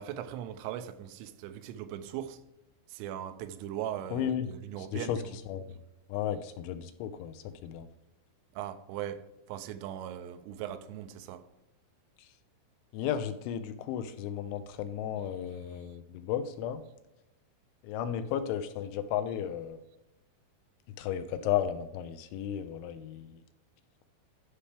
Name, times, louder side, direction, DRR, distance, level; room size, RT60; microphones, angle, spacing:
voice 1, 0.0-2.4 2.9-5.2 8.5-11.5 15.7-16.0, right 11 dB, 85° right, 3.2 m, -39 dB
voice 2, 4.1-4.5 4.9-5.2 5.5-5.6 6.1-7.9 12.9-16.8 17.8-19.8 21.0-23.4, left 10 dB, 85° left, 2.9 m, -34 dB
11.5 x 5.6 x 3.4 m
omnidirectional pair, 5.6 m